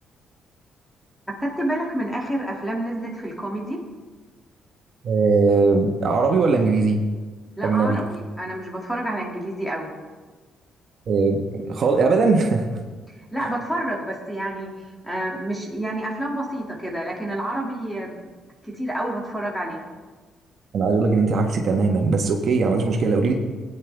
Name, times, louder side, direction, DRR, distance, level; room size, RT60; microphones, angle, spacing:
voice 1, 1.4-3.8 7.6-9.9 13.3-14.7 15.0-18.1 18.6-19.8, right 1 dB, 5° left, -2 dB, 2.5 m, -28 dB
voice 2, 5.0-7.0 7.6-8.0 11.1-12.7 13.4-13.5 20.7-23.3, right 4 dB, 55° right, 2 dB, 1.3 m, -20 dB
16.5 x 9.5 x 3.5 m, 1.3 s
cardioid pair, 90°, 0 cm